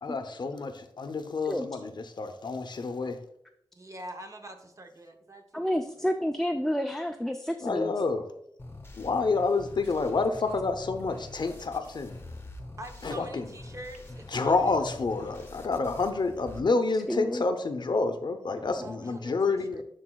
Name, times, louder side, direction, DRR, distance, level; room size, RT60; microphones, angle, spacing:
voice 1, 0.0-3.2 7.6-8.3 8.9-12.2 13.0-13.5 14.3-19.8, left 3 dB, 55° left, 8 dB, 0.6 m, -28 dB
voice 2, 3.7-6.0 12.8-14.9 18.8-19.8, right 1 dB, 35° right, 5 dB, 0.7 m, -45 dB
voice 3, 5.5-7.9 17.1-17.4 18.6-18.7, equal, 5° left, 5 dB, 0.3 m, -29 dB
sound 1, 8.6-16.6, left 2 dB, 25° left, 0.8 m, -45 dB
11.0 x 3.9 x 2.2 m, 0.75 s
wide cardioid pair, 85°, 9 cm